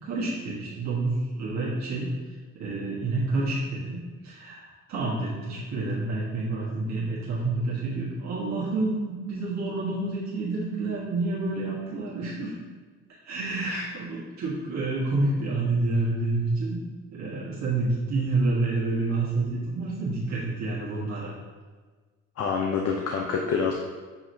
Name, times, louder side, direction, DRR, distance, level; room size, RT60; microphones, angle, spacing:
voice 1, 0.0-2.1 2.6-12.5 13.3-16.8 17.1-21.3, right 2 dB, 60° right, -7 dB, 1.3 m, -28 dB
voice 2, 22.4-23.7, left 5 dB, 55° left, 0 dB, 0.6 m, -27 dB
7.0 x 2.9 x 2.6 m, 1.4 s
cardioid pair, 90°, 30 cm